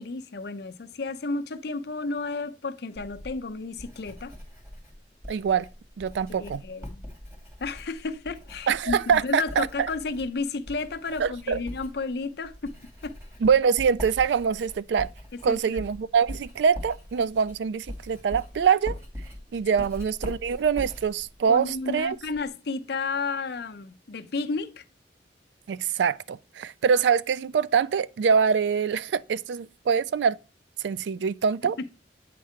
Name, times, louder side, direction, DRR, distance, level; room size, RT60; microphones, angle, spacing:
voice 1, 0.0-4.3 6.3-7.1 7.6-12.7 13.0-13.1 15.5-15.8 21.5-24.8 31.6-31.9, left 3 dB, 65° left, 0.6 m, -32 dB
Writing, 2.9-22.5, left 1 dB, 15° right, 2.3 m, -42 dB
voice 2, 5.3-5.7 6.0-6.6 8.7-9.9 11.2-11.6 13.4-15.1 15.4-19.0 19.5-22.2 25.7-30.4 30.8-31.9, right 6 dB, 75° right, 0.3 m, -24 dB
8.5 x 3.7 x 4.4 m
head